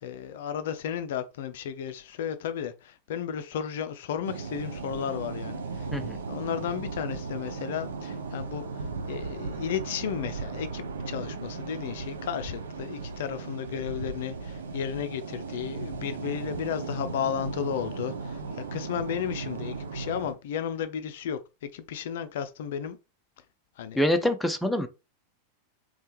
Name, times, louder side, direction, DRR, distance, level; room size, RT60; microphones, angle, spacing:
voice 1, 0.0-5.9 6.3-23.0 23.8-24.3, left 9 dB, 55° left, 0.4 m, -34 dB
sound 1, 4.2-20.3, right 4 dB, 65° right, 0.5 m, -36 dB
voice 2, 24.0-24.9, left 1 dB, 5° left, 0.5 m, -25 dB
3.5 x 3.3 x 3.1 m
figure-of-eight pair, 90°, 0 cm